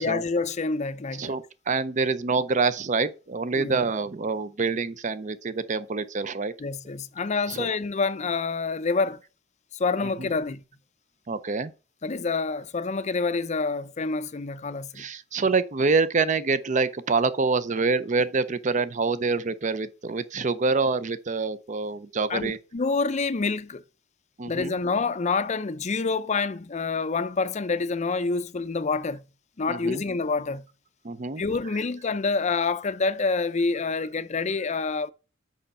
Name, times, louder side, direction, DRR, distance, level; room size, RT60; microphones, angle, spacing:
voice 1, 0.0-1.3 3.5-3.8 6.6-9.2 9.7-10.6 12.0-15.0 22.3-23.8 24.5-29.2 29.6-30.6 31.4-35.1, left 4 dB, 35° left, 0.5 m, -27 dB
voice 2, 1.2-6.5 7.5-7.7 10.0-10.3 11.3-11.7 15.0-22.6 24.4-24.7 29.7-30.0 31.0-31.4, right 4 dB, 40° right, 0.6 m, -26 dB
6.4 x 5.5 x 5.4 m
head